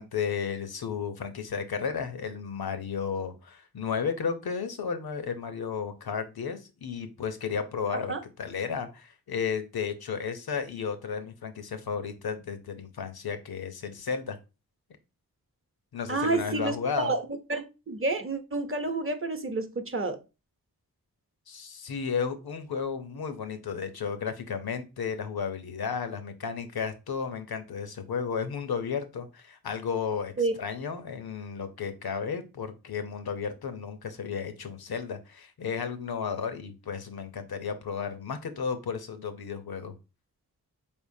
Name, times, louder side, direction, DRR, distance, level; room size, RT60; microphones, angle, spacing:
voice 1, 0.0-14.4 15.9-17.1 21.5-39.9, left 6 dB, 75° left, 9 dB, 0.7 m, -33 dB
voice 2, 16.1-17.2 17.5-20.2 30.4-30.5, right 3 dB, 35° right, 6 dB, 0.8 m, -29 dB
4.3 x 3.6 x 2.6 m, 0.29 s
cardioid pair, 40°, 38 cm